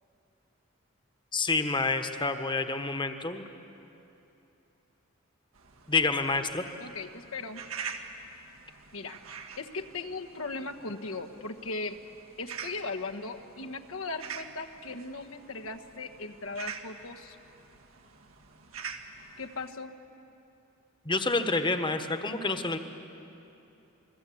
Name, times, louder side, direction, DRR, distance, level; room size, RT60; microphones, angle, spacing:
voice 1, 1.3-3.4 5.9-6.6 21.0-22.8, left 3 dB, 25° left, 8 dB, 1.3 m, -28 dB
sound 1, 5.5-19.7, right 6 dB, 80° right, 1.7 m, -45 dB
voice 2, 6.8-7.6 8.9-9.2 9.6-12.0 12.4-17.4 19.4-19.9, left 3 dB, 75° left, 5 dB, 1.4 m, -38 dB
28.0 x 21.0 x 8.6 m, 2.9 s
head